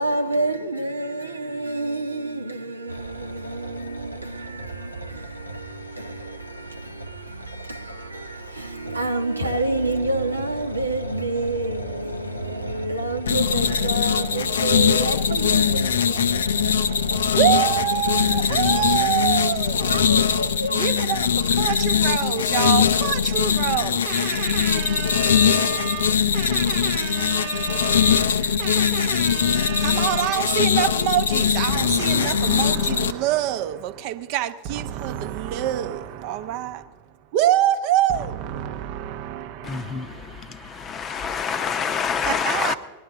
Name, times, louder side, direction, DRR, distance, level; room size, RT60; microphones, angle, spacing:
voice 1, 0.0-17.1 18.0-18.3 18.6-18.8 19.9-20.9, right 2 dB, 85° right, 0.9 m, -29 dB
sound 1, 2.9-20.5, right 2 dB, 85° left, 1.0 m, -37 dB
sound 2, 13.3-33.1, left 7 dB, 65° left, 0.5 m, -21 dB
voice 2, 17.3-20.0 20.7-41.2 42.3-42.8, right 12 dB, 45° right, 0.7 m, -26 dB
voice 3, 39.6-42.8, left 6 dB, 25° left, 0.7 m, -27 dB
19.5 x 11.0 x 3.9 m
figure-of-eight pair, 90°, 0 cm